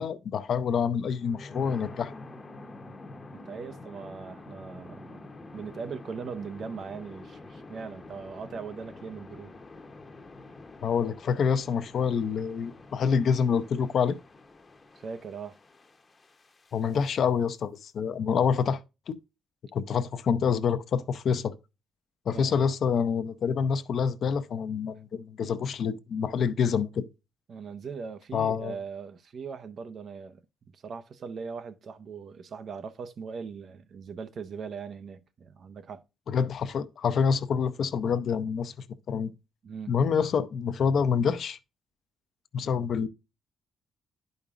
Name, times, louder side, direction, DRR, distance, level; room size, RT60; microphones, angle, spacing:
voice 1, 0.0-2.1 10.8-14.2 16.7-18.8 19.1-19.2 19.7-21.6 22.3-27.1 28.3-28.8 36.3-39.3 39.9-41.6 42.5-43.1, left 6 dB, 60° left, 0.6 m, -27 dB
sound 1, 1.1-17.0, left 2 dB, 30° left, 0.8 m, -47 dB
voice 2, 3.3-5.3 5.5-9.5 14.9-15.6 22.3-22.5 27.5-36.0 39.6-39.9, right 5 dB, 55° right, 0.7 m, -40 dB
11.0 x 5.2 x 2.4 m
cardioid pair, 90°, 0 cm